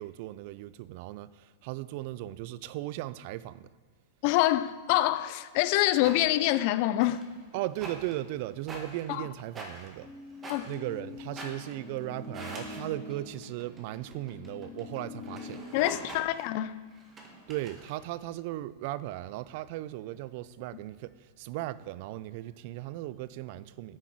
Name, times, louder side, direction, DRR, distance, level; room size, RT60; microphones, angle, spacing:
voice 1, 0.0-3.7 7.5-10.1 10.6-15.6 17.5-24.0, right 15 dB, 55° right, 0.3 m, -37 dB
voice 2, 4.2-7.2 9.1-9.2 10.5-10.7 15.7-16.8, left 15 dB, 55° left, 0.4 m, -26 dB
sound 1, 5.6-6.2 7.0-12.9 13.3-18.0, right 2 dB, 25° right, 1.8 m, -46 dB
sound 2, 10.0-15.6, left 4 dB, 15° left, 1.4 m, -44 dB
9.6 x 5.9 x 4.7 m
hypercardioid pair, 105°, 0 cm